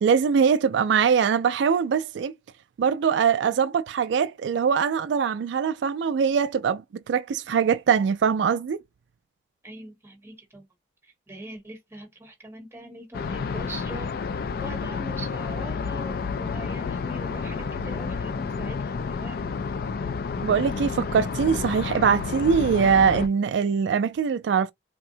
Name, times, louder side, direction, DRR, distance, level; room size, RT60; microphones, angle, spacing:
voice 1, 0.0-2.3 2.8-8.8 20.4-24.7, right 6 dB, 75° right, 0.3 m, -22 dB
voice 2, 9.6-10.7 11.0-14.2 14.6-19.4, right 1 dB, 15° right, 1.0 m, -42 dB
sound 1, 13.1-23.3, left 5 dB, 55° left, 0.3 m, -30 dB
3.4 x 2.0 x 2.7 m
head